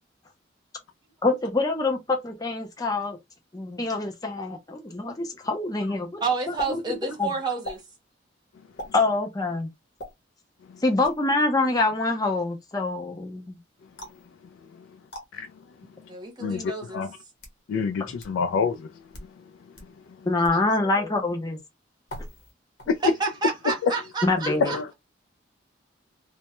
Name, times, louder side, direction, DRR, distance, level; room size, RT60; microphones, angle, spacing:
voice 1, 1.2-3.2 3.5-6.2 6.5-7.3 8.9-9.7 10.8-13.6 18.0-18.1 20.3-21.6 24.2-24.7, left 2 dB, 20° left, 0.5 m, -25 dB
voice 2, 6.2-7.8 16.1-17.1 20.5-20.7 21.0-21.1 23.2-24.9, right 4 dB, 20° right, 0.8 m, -30 dB
sound 1, 6.6-6.7 7.6-7.8 8.8-9.0 10.0-10.1 11.0-11.3 14.0-14.3 15.1-15.3 16.2-16.3 17.1-17.6 18.2-18.3 19.0-19.3 19.8-19.9 20.4-20.6 22.1-22.5 22.8-23.2, equal, 60° left, 0.8 m, -39 dB
voice 3, 17.7-18.9 22.9-23.0 23.8-23.9 24.6-24.9, left 5 dB, 90° left, 0.3 m, -26 dB
2.1 x 2.1 x 2.9 m
head